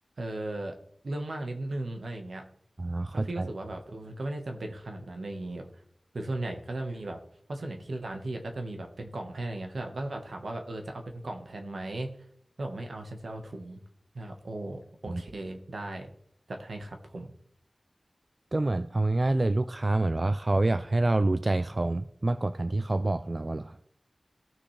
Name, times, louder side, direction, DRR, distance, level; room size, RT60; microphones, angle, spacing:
voice 1, 0.2-0.7 1.0-2.4 3.1-5.7 6.1-7.2 7.5-12.1 12.6-13.8 14.1-16.1 16.5-17.3, right 2 dB, 85° right, 4 dB, 1.3 m, -36 dB
voice 2, 2.8-3.5 15.1-15.2 18.5-23.8, right 2 dB, 45° right, 11 dB, 0.4 m, -27 dB
15.5 x 6.0 x 3.3 m, 0.68 s
wide cardioid pair, 55°, 0 cm